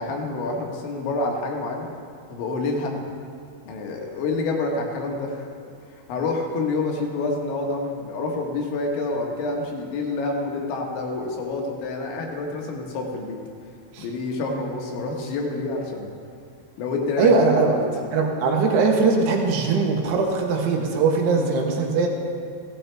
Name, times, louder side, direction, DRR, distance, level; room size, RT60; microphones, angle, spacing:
voice 1, 0.0-1.9 2.3-3.1 3.7-5.5 5.9-13.4 14.0-16.1 16.8-17.8 21.3-21.5, left 3 dB, 70° left, 1 dB, 3.5 m, -28 dB
voice 2, 17.2-17.7 18.1-22.1, right 4 dB, 70° right, 1 dB, 2.7 m, -20 dB
16.0 x 14.0 x 3.4 m, 2.4 s
omnidirectional pair, 5.9 m